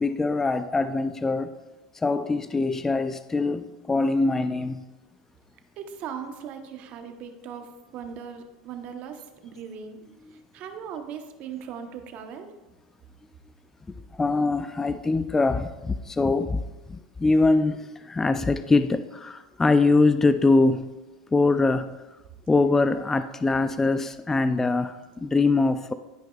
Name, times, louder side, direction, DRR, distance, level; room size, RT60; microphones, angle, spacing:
voice 1, 0.0-1.5 2.0-4.8 14.2-16.6 16.9-20.9 21.3-21.9 22.5-25.9, left 3 dB, 10° left, 11 dB, 0.3 m, -23 dB
voice 2, 5.8-10.0 10.3-12.5, right 7 dB, 50° right, 6 dB, 0.9 m, -39 dB
12.5 x 5.3 x 2.3 m, 1.1 s
supercardioid pair, 110°, 3 cm